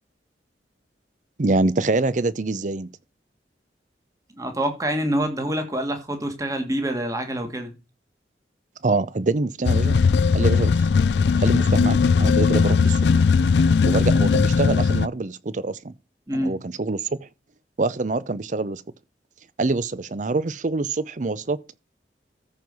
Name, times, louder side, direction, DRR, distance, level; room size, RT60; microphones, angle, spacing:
voice 1, 1.4-2.9 8.8-10.0 10.3-10.7 11.4-13.0 13.8-15.9 16.3-17.0 17.8-18.8 19.6-21.6, right 3 dB, 45° right, 0.6 m, -25 dB
voice 2, 4.4-7.7 16.3-16.6, right 1 dB, 20° right, 1.9 m, -26 dB
sound 1, 9.6-15.1, left 5 dB, 75° left, 0.4 m, -18 dB
14.0 x 4.7 x 5.4 m
head